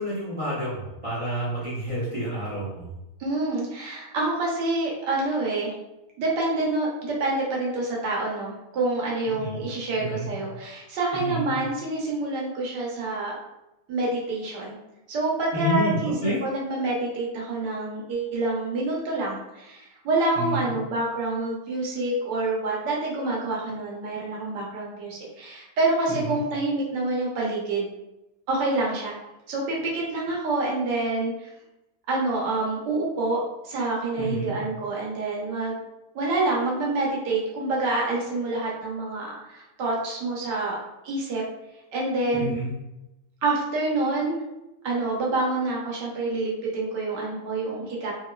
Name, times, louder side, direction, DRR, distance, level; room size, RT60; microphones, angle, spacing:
voice 1, 0.0-2.8 9.4-9.6 10.0-10.3 11.1-11.5 15.5-16.4 20.4-20.7 26.1-26.4 34.2-34.5 42.3-42.7, equal, 35° right, -7 dB, 0.5 m, -29 dB
voice 2, 3.2-5.7 6.2-13.4 13.9-14.8 15.1-27.9 28.5-29.2 29.5-31.5 32.1-33.4 33.6-35.8 36.1-40.8 41.0-41.4 41.9-42.6 43.4-44.4 44.8-48.1, right 2 dB, 75° right, -3 dB, 1.4 m, -27 dB
3.1 x 2.7 x 2.2 m, 0.93 s
omnidirectional pair, 1.9 m